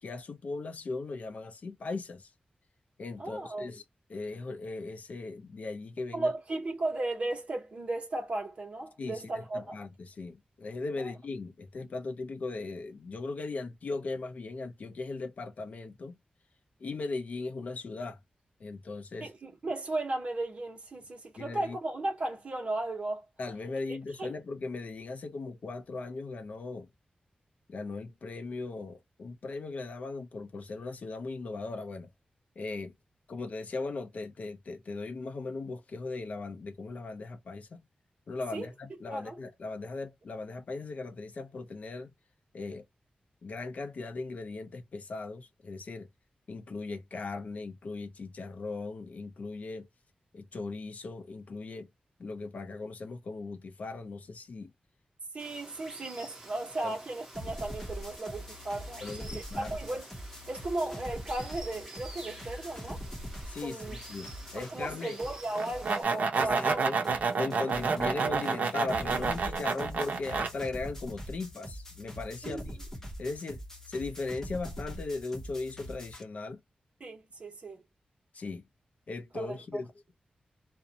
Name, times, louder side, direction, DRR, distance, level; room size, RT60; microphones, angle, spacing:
voice 1, 0.0-2.3 3.0-3.8 4.1-6.3 9.0-16.2 16.8-18.2 18.6-19.3 21.4-21.8 23.4-26.9 27.7-32.1 32.6-32.9 33.3-37.8 38.3-42.1 42.5-42.9 43.4-46.1 46.5-49.9 50.3-51.9 52.2-54.7 56.8-57.0 59.0-59.8 63.5-65.2 66.4-67.0 67.3-72.8 73.2-76.6 78.3-78.7 79.1-79.9, left 3 dB, 55° left, 0.6 m, -38 dB
voice 2, 3.2-3.7 6.1-9.8 11.0-11.1 19.2-23.2 23.9-24.3 38.5-38.7 39.1-39.4 55.3-60.1 60.5-63.0 63.6-64.0 64.5-66.8 72.4-72.6 77.0-77.8 79.3-79.8, right 2 dB, 40° right, 1.1 m, -35 dB
Water, 55.4-66.0, right 1 dB, 15° right, 1.1 m, -49 dB
sound 1, 57.3-64.9 65.2-76.2, equal, 15° left, 0.9 m, -43 dB
sound 2, 65.6-70.5, right 4 dB, 65° right, 0.7 m, -29 dB
2.6 x 2.2 x 2.8 m
wide cardioid pair, 160°, 3 cm